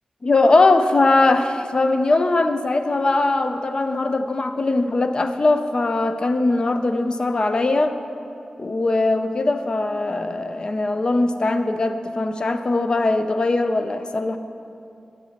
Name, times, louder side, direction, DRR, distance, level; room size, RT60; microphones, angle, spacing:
voice 1, 0.2-8.0 8.6-14.4, left 2 dB, 40° left, 8 dB, 0.4 m, -20 dB
10.5 x 7.5 x 2.8 m, 2.7 s
wide cardioid pair, 90°, 2 cm